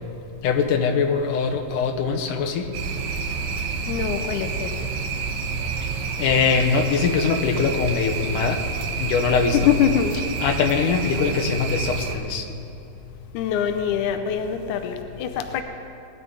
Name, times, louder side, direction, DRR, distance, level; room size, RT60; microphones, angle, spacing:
voice 1, 0.4-2.7 6.2-8.6 9.0-9.7 10.4-12.4, left 5 dB, 70° left, 3 dB, 2.2 m, -22 dB
sound 1, 2.7-12.2, right 5 dB, 75° right, 1.7 m, -29 dB
voice 2, 3.9-4.7 9.7-10.1 13.3-15.6, left 9 dB, 90° left, 7 dB, 1.7 m, -24 dB
20.5 x 11.5 x 3.9 m, 2.8 s
omnidirectional pair, 4.4 m